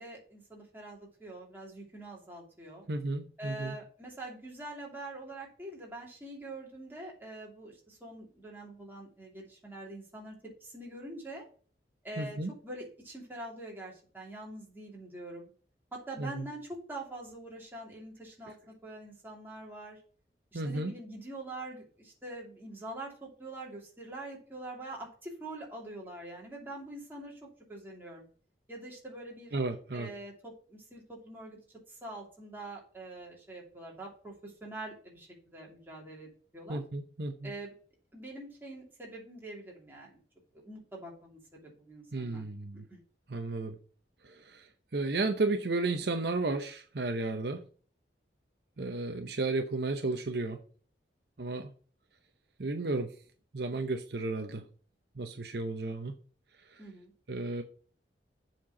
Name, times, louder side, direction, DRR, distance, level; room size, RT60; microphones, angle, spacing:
voice 1, 0.0-2.9 3.4-11.4 12.0-15.5 15.9-20.0 20.5-28.2 28.7-29.5 29.9-31.6 31.9-36.8 37.4-37.7 38.1-40.2 40.5-42.4 56.8-57.1, right 2 dB, 10° right, -2 dB, 2.8 m, -44 dB
voice 2, 2.9-3.8 12.2-12.5 16.2-16.5 20.5-20.9 29.5-30.1 36.7-37.5 42.1-42.8 43.3-43.7 44.2-44.7 44.9-47.6 48.8-50.6 51.4-51.7 52.6-53.1 53.5-54.6 55.2-56.1 56.7-56.8 57.3-57.6, right 3 dB, 60° right, 6 dB, 0.8 m, -33 dB
7.6 x 4.5 x 7.0 m, 0.42 s
head